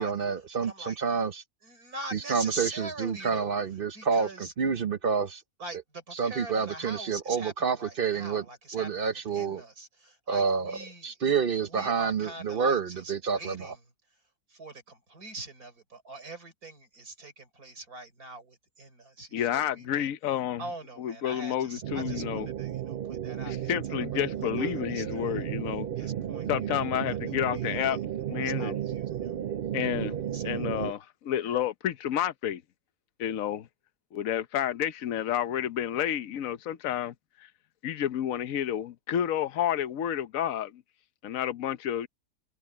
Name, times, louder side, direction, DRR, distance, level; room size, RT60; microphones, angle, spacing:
voice 1, 0.0-1.4 2.1-5.4 6.1-8.4 8.7-9.6 10.3-10.8 11.0-13.7, right 6 dB, 45° right, 0.8 m, -28 dB
voice 2, 0.6-1.0 1.6-3.6 3.9-4.5 5.6-11.1 11.6-13.8 14.5-20.1 20.6-24.2 24.6-25.3 26.0-26.5 26.7-28.0 28.3-29.3 30.1-30.9, right 2 dB, 70° right, 5.2 m, -43 dB
voice 3, 19.3-20.6 21.0-22.5 23.5-25.9 26.5-28.0 28.3-28.8 29.7-32.6 33.2-33.7 34.1-37.1 37.8-40.8 41.2-42.1, left 10 dB, 65° left, 1.2 m, -30 dB
sound 1, 21.8-30.9, right 10 dB, 90° right, 0.4 m, -33 dB
omnidirectional pair, 1.6 m